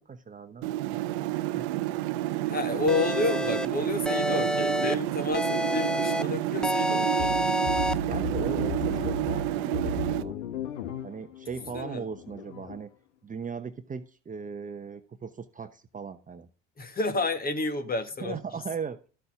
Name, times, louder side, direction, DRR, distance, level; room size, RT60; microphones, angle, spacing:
voice 1, 0.1-0.7 1.5-1.7 2.5-2.6 8.1-10.3 11.0-12.9 13.2-16.5 18.2-19.0, right 6 dB, 20° right, 1.0 m, -38 dB
sound 1, 0.6-10.2, right 16 dB, 65° right, 0.8 m, -30 dB
voice 2, 2.5-7.3 11.7-12.1 16.8-18.4, left 3 dB, 25° left, 1.7 m, -30 dB
sound 2, 2.9-3.7 4.1-4.9 5.3-6.2 6.6-7.9, equal, ahead, 0.5 m, -28 dB
sound 3, 7.2-12.8, left 4 dB, 75° left, 1.3 m, -35 dB
13.0 x 8.0 x 3.7 m
figure-of-eight pair, 65°, 35 cm